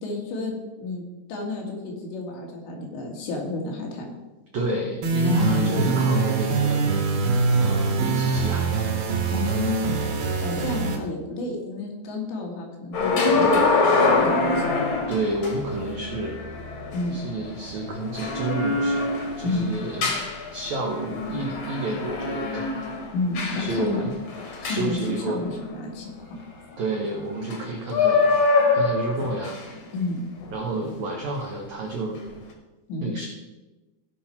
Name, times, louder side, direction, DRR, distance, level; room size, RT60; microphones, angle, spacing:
voice 1, 0.0-4.1 5.2-6.1 9.3-14.8 16.9-17.2 19.4-19.7 23.1-24.1 24.6-25.0 25.3-26.4 29.9-30.2 32.9-33.2, left 3 dB, 85° left, 0 dB, 4.2 m, -30 dB
voice 2, 4.5-6.8 7.5-9.0 15.1-16.4 17.1-19.0 19.4-20.1 20.5-22.7 23.6-24.1 24.6-25.5 26.8-28.3 28.7-29.6 30.5-32.2 33.0-33.3, right 2 dB, 80° right, 0 dB, 1.6 m, -30 dB
sound 1, 5.0-11.0, right 4 dB, 65° right, 3.1 m, -23 dB
sound 2, 12.9-25.7 27.4-27.6 27.9-29.7 30.4-30.6, left 3 dB, 55° left, 2.0 m, -25 dB
16.5 x 5.7 x 4.5 m, 1.1 s
omnidirectional pair, 5.0 m